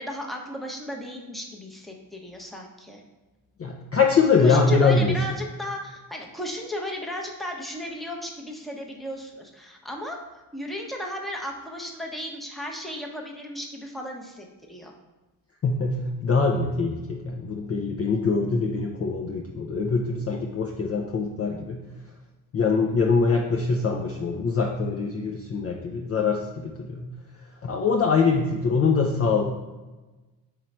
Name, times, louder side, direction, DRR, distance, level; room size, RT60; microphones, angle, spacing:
voice 1, 0.0-3.0 4.4-10.2 10.5-14.9, equal, ahead, 0 dB, 0.8 m, -35 dB
voice 2, 3.6-5.1 15.6-21.8 22.5-27.1 27.6-29.4, left 4 dB, 30° left, 1 dB, 0.5 m, -23 dB
3.8 x 3.1 x 4.4 m, 1.1 s
supercardioid pair, 55°, 49 cm